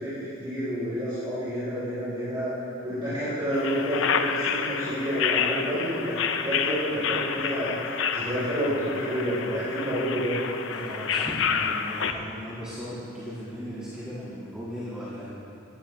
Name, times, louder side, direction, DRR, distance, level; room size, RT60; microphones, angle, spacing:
voice 1, 0.0-2.5 2.8-10.4, equal, 25° right, -13 dB, 3.3 m, -29 dB
sound 1, 3.5-12.1, left 7 dB, 60° left, 0.6 m, -29 dB
voice 2, 10.6-15.3, equal, 5° right, -10 dB, 1.7 m, -37 dB
15.5 x 13.0 x 3.1 m, 2.9 s
head